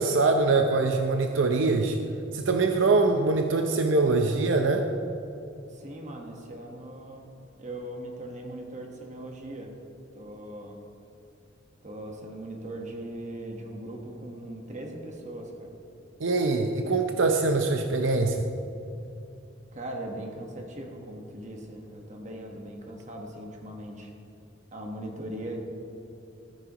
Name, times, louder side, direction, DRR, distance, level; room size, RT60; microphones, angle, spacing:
voice 1, 0.0-2.0 2.3-4.9 16.2-18.5, right 3 dB, 80° right, 4 dB, 0.7 m, -23 dB
voice 2, 5.7-7.3 7.6-9.7 10.1-10.8 11.8-15.8 19.7-24.1 24.7-25.6, right 1 dB, 40° right, 1 dB, 1.4 m, -39 dB
14.0 x 13.5 x 3.0 m, 2.8 s
head